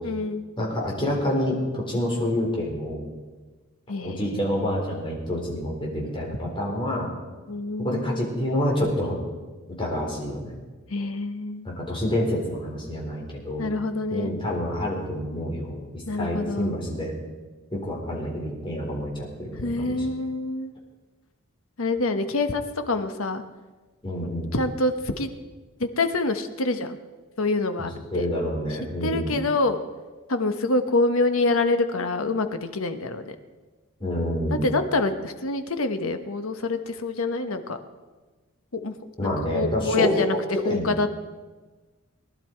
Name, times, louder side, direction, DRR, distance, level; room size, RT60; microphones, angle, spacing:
voice 1, 0.0-0.4 3.9-4.8 7.5-8.3 10.9-11.7 13.6-14.3 16.1-16.7 19.6-20.7 21.8-23.4 24.5-25.3 25.8-27.0 27.4-28.3 29.0-29.8 30.3-33.4 34.6-37.8 38.7-39.0 39.2-40.4 40.6-41.2, left 2 dB, 75° left, 8 dB, 1.1 m, -26 dB
voice 2, 0.6-3.0 4.0-7.1 7.8-9.2 9.8-10.5 11.6-13.7 14.1-17.1 17.7-20.0 24.0-24.5 28.1-29.3 34.0-34.7 39.2-40.3 40.6-40.9, equal, 25° left, -2 dB, 3.9 m, -27 dB
19.5 x 11.5 x 4.5 m, 1.3 s
head